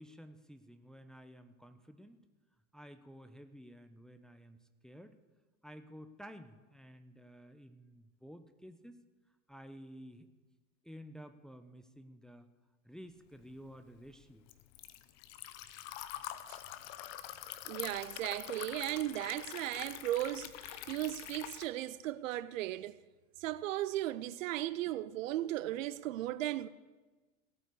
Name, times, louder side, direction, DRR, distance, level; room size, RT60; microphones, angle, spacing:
voice 1, 0.0-2.2 2.7-4.6 4.8-5.2 5.6-9.0 9.5-10.3 10.8-12.5 12.8-14.4, equal, ahead, 0.7 m, -52 dB
Liquid, 13.4-21.7, left 13 dB, 50° left, 1.0 m, -45 dB
voice 2, 17.7-23.0 23.4-26.7, right 14 dB, 60° right, 0.6 m, -36 dB
16.5 x 8.9 x 6.8 m
figure-of-eight pair, 80°, 44 cm